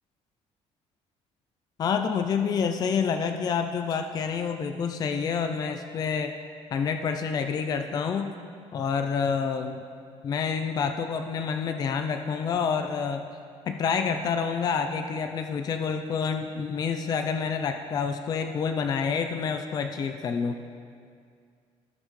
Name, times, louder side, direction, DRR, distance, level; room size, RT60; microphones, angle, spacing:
voice 1, 1.8-6.3 6.7-8.3 8.7-9.8 10.2-13.3 13.7-20.6, left 6 dB, 35° left, 7 dB, 0.4 m, -28 dB
16.0 x 5.4 x 3.2 m, 2.2 s
cardioid pair, 150°, 12 cm